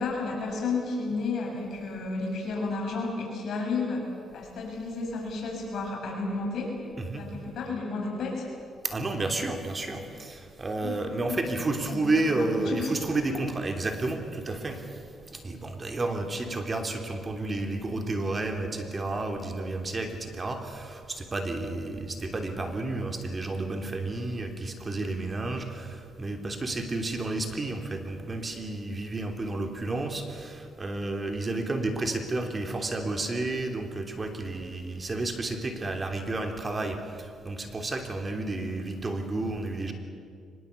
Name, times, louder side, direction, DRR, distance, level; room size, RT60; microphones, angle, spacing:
voice 1, 0.0-6.7 7.1-8.5 10.8-11.0 11.3-11.5 11.9-12.9, left 3 dB, 65° left, -1 dB, 7.3 m, -32 dB
voice 2, 8.8-14.8 15.3-39.9, right 2 dB, 30° right, 5 dB, 3.1 m, -31 dB
24.0 x 21.0 x 8.4 m, 2.3 s
cardioid pair, 90°, 0 cm